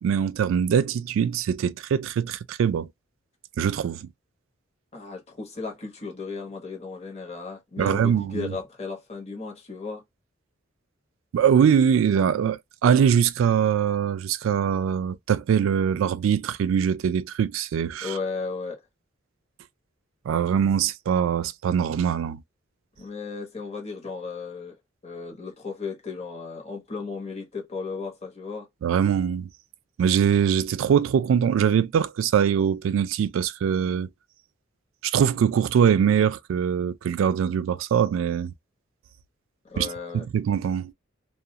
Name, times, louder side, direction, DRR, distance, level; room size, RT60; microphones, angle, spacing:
voice 1, 0.0-2.9 3.6-4.1 7.8-8.5 11.3-18.1 20.3-22.4 28.8-29.5 30.0-34.1 35.0-38.5 39.8-39.9 40.1-40.9, right 8 dB, 85° right, 0.3 m, -22 dB
voice 2, 4.9-10.0 18.0-18.8 23.0-24.8 25.0-28.7 39.7-40.3, left 4 dB, 35° left, 1.0 m, -35 dB
2.4 x 2.3 x 2.7 m
head